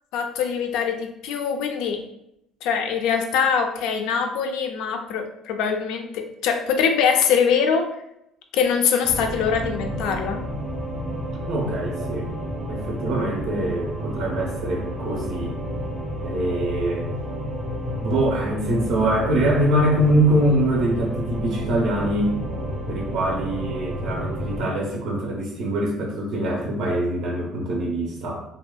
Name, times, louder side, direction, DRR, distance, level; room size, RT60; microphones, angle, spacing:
voice 1, 0.1-2.0 2.6-7.9 8.5-10.4, left 6 dB, 70° left, 5 dB, 0.3 m, -23 dB
sound 1, 9.0-24.6, equal, 10° right, 0.6 m, -30 dB
voice 2, 11.5-12.3 12.7-15.6 16.2-17.1 18.0-28.4, right 1 dB, 55° right, -1 dB, 0.4 m, -24 dB
2.7 x 2.1 x 2.3 m, 0.81 s
cardioid pair, 160°, 0 cm